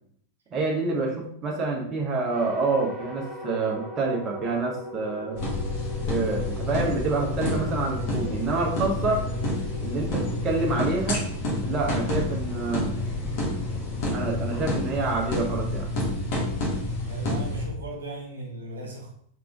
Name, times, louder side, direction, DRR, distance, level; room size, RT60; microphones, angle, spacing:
voice 1, 0.5-5.4 6.0-9.2 9.8-11.3 11.6-12.9 14.1-15.9, right 3 dB, 30° right, 0 dB, 1.0 m, -27 dB
sound 1, 2.3-11.6, left 1 dB, 5° right, 1.1 m, -40 dB
sound 2, 5.4-17.7, left 1 dB, 45° left, 1.3 m, -29 dB
voice 2, 17.1-19.1, right 2 dB, 70° right, -1 dB, 0.8 m, -37 dB
3.6 x 3.6 x 3.5 m, 0.66 s
figure-of-eight pair, 90°, 0 cm